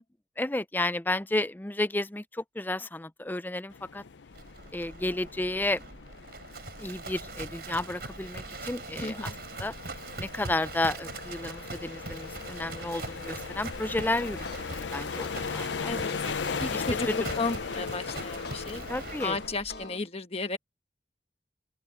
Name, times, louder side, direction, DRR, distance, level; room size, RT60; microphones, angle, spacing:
voice 1, 0.4-4.0 4.7-5.8 6.8-9.3 9.6-9.7 10.2-15.9 16.4-17.1 18.9-19.4, left 2 dB, 10° left, 0.5 m, -32 dB
sound 1, 3.7-19.5, left 5 dB, 85° left, 0.6 m, -38 dB
Livestock farm animals working animals, 4.3-19.9, right 3 dB, 60° right, 4.5 m, -42 dB
voice 2, 9.0-9.3 15.8-16.1 16.5-18.8 19.2-20.6, left 3 dB, 35° left, 1.3 m, -33 dB
sound 2, 14.2-20.0, left 3 dB, 60° left, 1.2 m, -45 dB
open air
head